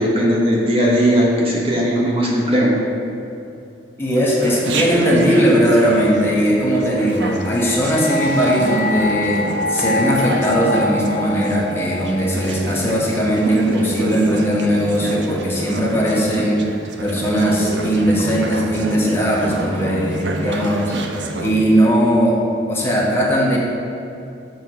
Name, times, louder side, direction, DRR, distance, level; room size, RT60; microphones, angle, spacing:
voice 1, 0.0-2.7, equal, 30° right, -3 dB, 1.0 m, -17 dB
voice 2, 4.0-16.6 17.0-20.9 21.4-22.4 22.7-23.6, equal, 15° left, -5 dB, 1.2 m, -18 dB
Chatter, 4.4-21.5, right 2 dB, 75° right, 0.6 m, -28 dB
sound 1, 6.6-13.7, left 2 dB, 55° left, 0.4 m, -27 dB
7.1 x 4.5 x 6.2 m, 2.6 s
head